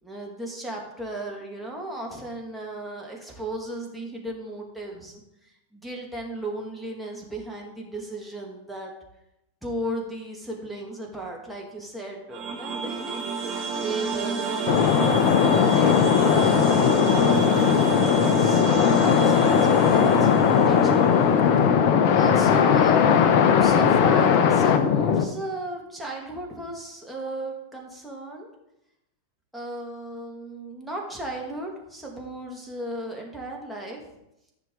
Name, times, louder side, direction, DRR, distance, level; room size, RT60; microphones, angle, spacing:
voice 1, 0.0-5.2 5.7-8.9 9.6-13.2 13.7-17.5 18.1-21.1 22.1-28.5 29.5-34.0, right 1 dB, ahead, -2 dB, 2.4 m, -35 dB
sound 1, 12.3-23.4, right 5 dB, 35° right, 2.2 m, -30 dB
sound 2, 14.7-25.2, left 7 dB, 45° left, 0.9 m, -19 dB
14.0 x 6.0 x 4.0 m, 0.86 s
figure-of-eight pair, 90°, 0 cm